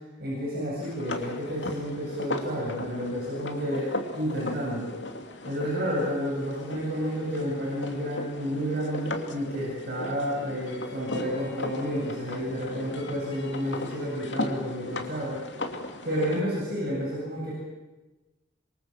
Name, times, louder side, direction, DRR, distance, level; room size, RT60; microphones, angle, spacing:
voice 1, 0.2-5.0 5.4-15.4 16.0-17.5, equal, 55° right, -5 dB, 7.9 m, -30 dB
sound 1, 0.8-16.4, left 2 dB, 65° left, 2.7 m, -37 dB
27.0 x 23.5 x 7.5 m, 1.1 s
head